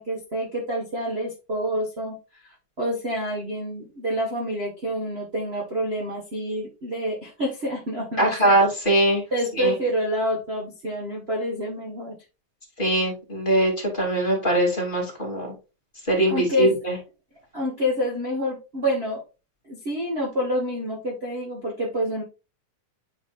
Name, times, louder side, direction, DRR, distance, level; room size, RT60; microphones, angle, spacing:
voice 1, 0.0-2.2 2.8-8.5 9.3-12.1 16.3-16.7 17.5-19.2 19.7-22.2, equal, 40° right, -3 dB, 0.8 m, -27 dB
voice 2, 8.2-9.2 9.6-9.7 12.8-15.5 16.1-17.0, right 1 dB, 15° left, -2 dB, 2.4 m, -21 dB
9.1 x 4.9 x 2.5 m, 0.29 s
omnidirectional pair, 3.8 m